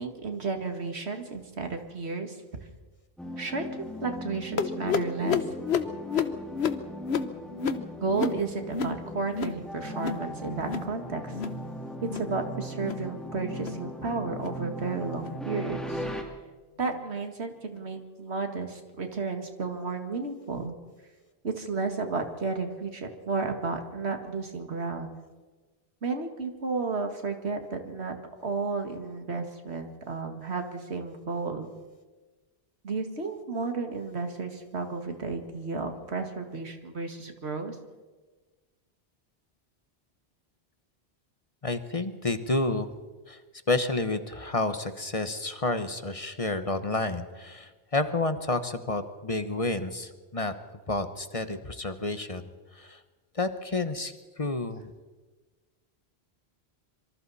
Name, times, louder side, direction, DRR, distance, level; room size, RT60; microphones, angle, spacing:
voice 1, 0.0-2.4 3.4-3.6 4.0-5.4 8.0-11.3 12.1-16.1 16.8-20.8 21.4-25.2 26.0-28.2 28.4-31.7 32.8-37.8, right 4 dB, 85° right, 5 dB, 2.3 m, -32 dB
sound 1, 3.2-16.2, equal, ahead, 2.7 m, -39 dB
sound 2, 4.6-9.6 9.9-10.3 10.5-10.9 11.2-11.6 12.0-12.3 12.7-13.1 13.5-13.8 14.3-14.6 15.2-15.4 16.0-16.2 16.9-17.0 17.7-17.8, left 6 dB, 80° left, 1.3 m, -31 dB
voice 2, 41.6-42.9 43.3-43.4 43.7-50.5 50.9-52.4 52.7-53.0 53.3-54.9, left 2 dB, 35° left, 9 dB, 1.1 m, -30 dB
26.0 x 24.0 x 4.2 m, 1.3 s
omnidirectional pair, 1.1 m